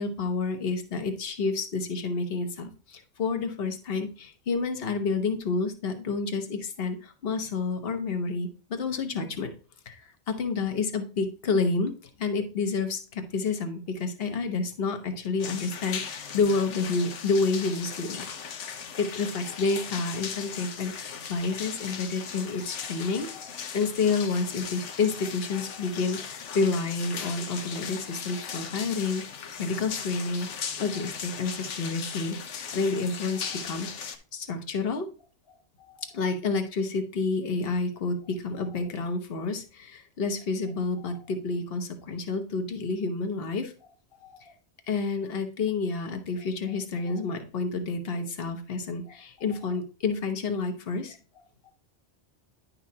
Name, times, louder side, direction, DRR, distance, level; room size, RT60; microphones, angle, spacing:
voice 1, 0.0-9.5 9.9-11.9 12.2-18.3 19.0-29.2 29.6-33.9 34.3-35.1 35.9-43.7 44.2-44.5 44.9-51.2 51.7-51.8, left 4 dB, 55° left, 6 dB, 1.3 m, -29 dB
sound 1, 15.4-34.2, left 6 dB, 85° left, 1.2 m, -38 dB
10.5 x 5.6 x 2.8 m, 0.36 s
omnidirectional pair, 1.2 m